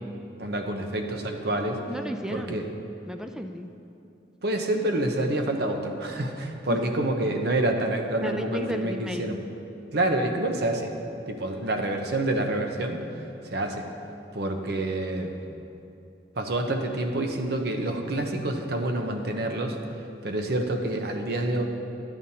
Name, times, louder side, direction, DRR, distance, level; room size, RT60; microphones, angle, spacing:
voice 1, 0.4-1.8 2.3-2.7 4.4-9.4 9.9-10.9 11.3-13.0 13.5-13.9 14.3-15.4 16.4-19.8 20.2-21.6, right 1 dB, 55° right, 4 dB, 0.8 m, -27 dB
voice 2, 1.9-2.6 3.1-3.7 8.2-9.2, equal, 5° right, 6 dB, 0.4 m, -33 dB
13.0 x 9.0 x 2.8 m, 2.7 s
head